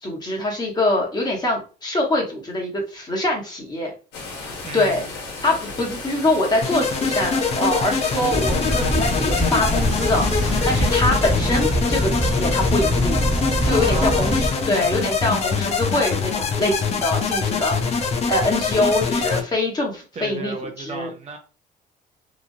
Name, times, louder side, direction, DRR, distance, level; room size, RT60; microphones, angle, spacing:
voice 1, 0.0-3.9 4.4-5.0 5.4-21.1, left 1 dB, 25° left, 1.2 m, -24 dB
sound 1, 4.1-11.0, left 3 dB, 85° left, 1.2 m, -35 dB
voice 2, 4.6-5.1 13.7-14.4 20.2-21.4, right 4 dB, 40° right, 0.6 m, -33 dB
sound 2, 6.6-19.4, left 5 dB, 40° left, 0.6 m, -24 dB
sound 3, 8.3-14.5, right 1 dB, 5° right, 1.0 m, -23 dB
3.0 x 2.4 x 2.7 m
cardioid pair, 110°, 17 cm